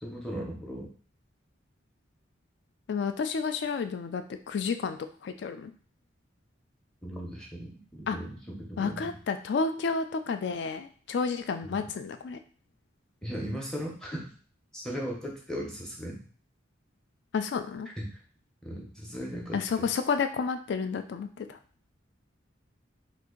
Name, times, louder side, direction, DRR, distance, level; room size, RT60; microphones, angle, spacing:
voice 1, 0.0-0.9 7.0-9.1 11.6-11.8 13.2-14.3 14.7-16.2 18.0-18.2 18.6-19.6, equal, 5° left, -2 dB, 0.6 m, -37 dB
voice 2, 2.9-5.7 8.1-8.2 8.8-12.4 17.3-17.9 19.5-21.6, left 5 dB, 60° left, 9 dB, 0.3 m, -31 dB
2.7 x 2.5 x 3.7 m, 0.43 s
head